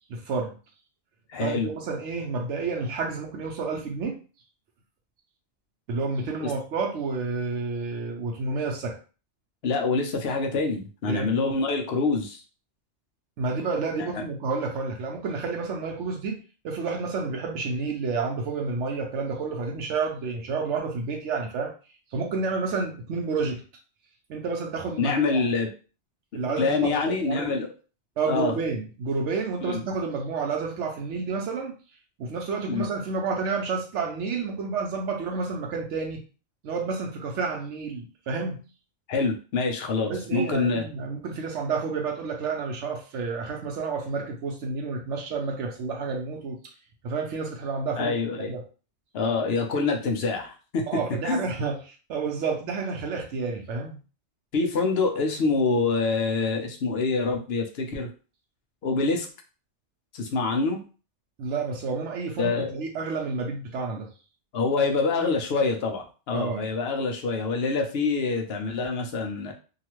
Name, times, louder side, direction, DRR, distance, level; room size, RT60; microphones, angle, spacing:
voice 1, 0.1-0.6 1.4-4.2 5.9-9.0 11.1-11.3 13.4-21.7 22.1-23.6 24.3-25.4 26.3-27.5 28.2-31.7 32.2-36.2 36.6-38.6 40.1-46.6 47.0-48.1 48.5-48.7 50.9-54.0 61.4-64.1 66.3-66.7, right 4 dB, 80° right, 2 dB, 0.9 m, -30 dB
voice 2, 1.3-1.7 6.4-6.5 9.6-12.4 14.0-14.1 25.0-25.7 26.3-27.7 28.3-28.5 29.6-29.8 32.7-32.9 39.1-40.8 48.0-48.5 49.1-50.9 51.2-51.4 54.5-58.1 58.8-59.3 60.1-60.8 62.4-62.7 64.5-69.5, left 4 dB, 65° left, 3 dB, 0.9 m, -26 dB
2.8 x 2.3 x 3.0 m, 0.35 s
omnidirectional pair, 1.2 m